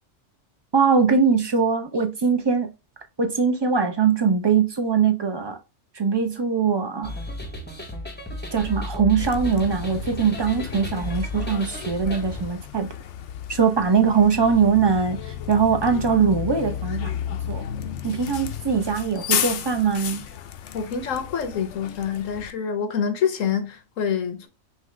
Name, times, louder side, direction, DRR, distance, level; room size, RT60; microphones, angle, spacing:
voice 1, 0.7-2.7 3.2-5.6 5.9-7.1 8.5-12.9 13.5-17.1 17.5-17.6 18.0-20.2, right 6 dB, 30° right, 0.5 m, -21 dB
sound 1, 7.0-12.4, left 1 dB, 10° left, 0.8 m, -34 dB
Bus, 9.2-22.5, left 9 dB, 70° left, 0.9 m, -33 dB
voice 2, 20.7-24.5, left 7 dB, 85° left, 1.3 m, -26 dB
5.6 x 2.3 x 3.2 m
omnidirectional pair, 1.3 m